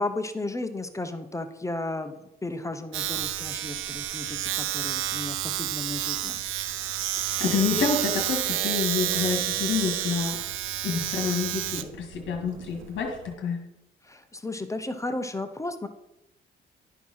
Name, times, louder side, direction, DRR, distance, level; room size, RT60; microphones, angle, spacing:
voice 1, 0.0-6.4 14.0-15.9, left 2 dB, 15° left, 8 dB, 0.8 m, -34 dB
Domestic sounds home sounds, 2.9-13.3, right 13 dB, 90° right, 0.6 m, -30 dB
voice 2, 7.4-10.4 10.8-13.6, left 5 dB, 70° left, 1 dB, 1.9 m, -28 dB
11.5 x 4.7 x 5.6 m, 0.90 s
cardioid pair, 90°, 20 cm